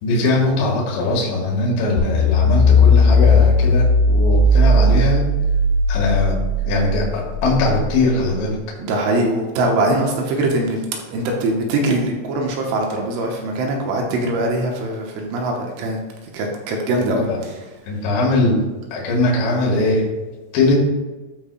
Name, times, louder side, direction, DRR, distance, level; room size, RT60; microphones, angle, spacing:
voice 1, 0.0-5.2 5.9-6.3 6.7-8.6 17.0-17.4 17.8-18.6 18.9-20.0 20.5-20.7, left 2 dB, 70° left, -3 dB, 3.6 m, -20 dB
sound 1, 2.0-8.2, left 2 dB, 90° left, 2.0 m, -16 dB
voice 2, 8.8-10.8 11.1-16.0 16.3-17.5, right 2 dB, 80° right, 1 dB, 3.3 m, -22 dB
15.5 x 5.3 x 2.2 m, 1.2 s
omnidirectional pair, 5.8 m